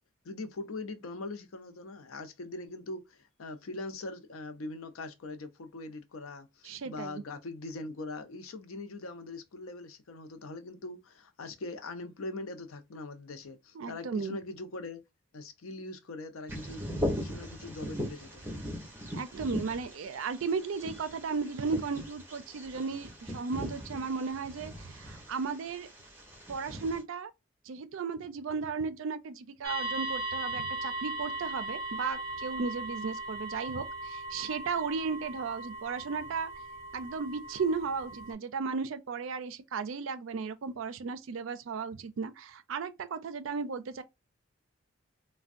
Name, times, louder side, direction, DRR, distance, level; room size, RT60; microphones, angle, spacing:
voice 1, 0.2-15.0 15.3-16.8 17.2-18.4, left 2 dB, 90° left, 0.5 m, -42 dB
voice 2, 6.6-7.2 13.8-14.4 19.1-25.9 26.5-27.3 27.7-36.5 36.9-44.0, right 5 dB, 75° right, 0.4 m, -35 dB
Bird vocalization bird call bird song, 16.5-27.0, equal, 10° right, 1.0 m, -39 dB
sound 1, 29.6-38.3, right 2 dB, 30° left, 1.3 m, -38 dB
3.4 x 2.1 x 2.4 m
head